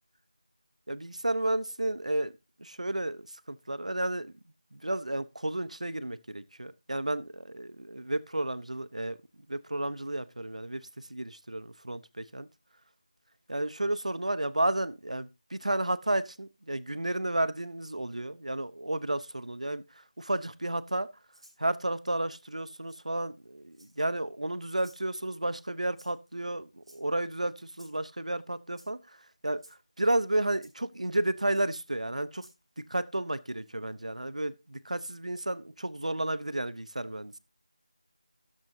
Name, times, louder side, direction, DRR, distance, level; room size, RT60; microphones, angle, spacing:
voice 1, 0.9-2.3 2.6-4.3 4.7-9.2 9.5-12.5 13.5-21.1 21.6-29.2 29.4-29.6 30.0-32.5 32.9-37.4, right 1 dB, 75° right, 0.9 m, -32 dB
Rattle (instrument), 21.3-21.6 22.9-23.0 23.7-24.2 24.7-25.0 25.9-26.3 26.8-27.3 27.7-28.0 28.7-28.9 29.6-29.8 30.6-30.7 31.5-31.6 32.3-32.6, right 1 dB, 50° right, 7.0 m, -56 dB
13.0 x 10.5 x 2.7 m
figure-of-eight pair, 170°, 4 cm